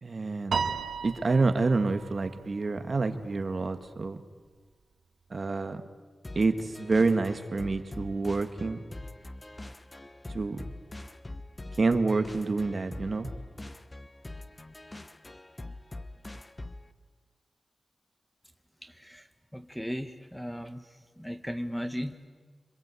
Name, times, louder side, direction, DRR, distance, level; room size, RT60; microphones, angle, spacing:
voice 1, 0.0-0.6 1.0-4.2 5.3-5.8 6.3-8.8 10.3-10.6 11.8-13.3, right 3 dB, 40° right, 8 dB, 1.6 m, -28 dB
Piano, 0.5-3.0, right 5 dB, 90° right, 1.8 m, -34 dB
sound 1, 6.2-16.9, left 2 dB, 20° left, 1.0 m, -43 dB
voice 2, 18.8-19.2 19.5-20.9 21.2-22.3, equal, ahead, 8 dB, 1.2 m, -36 dB
27.5 x 25.0 x 8.3 m, 1.4 s
wide cardioid pair, 155°, 0 cm